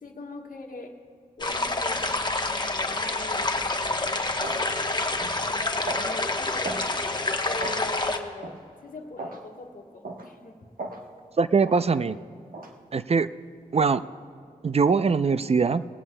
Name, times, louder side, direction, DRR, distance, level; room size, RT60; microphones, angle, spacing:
voice 1, 0.0-1.0 1.4-5.1 5.4-6.8 7.4-10.6, left 3 dB, 70° left, 3 dB, 1.4 m, -41 dB
sound 1, 1.4-8.2, left 2 dB, 30° left, 1.0 m, -28 dB
sound 2, 3.7-3.9 4.4-4.7 5.2-5.4 5.9-6.1 6.6-6.9 7.6-7.8 8.4-8.6 9.2-9.4 10.0-10.3 10.8-11.0 11.6-11.8 12.5-12.7, right 2 dB, 75° right, 1.2 m, -36 dB
voice 2, 11.4-12.2 12.9-13.3 13.7-14.0 14.6-15.8, right 5 dB, 45° right, 14 dB, 0.4 m, -22 dB
19.0 x 16.5 x 2.2 m, 2.3 s
cardioid pair, 40°, 15 cm